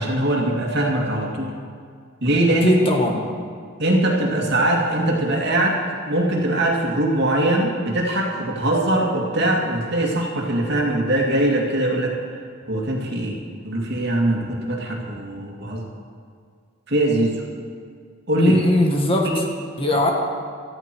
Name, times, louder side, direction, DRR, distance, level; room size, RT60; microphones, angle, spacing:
voice 1, 0.0-1.5 2.2-2.7 3.8-12.2 12.7-13.4 13.6-15.8 16.9-17.3 18.3-18.6 19.3-19.4, right 1 dB, 55° right, -1 dB, 2.5 m, -21 dB
voice 2, 2.6-3.2 18.4-19.3 19.8-20.1, left 1 dB, 30° left, 1 dB, 1.7 m, -19 dB
18.0 x 14.0 x 4.6 m, 2.2 s
head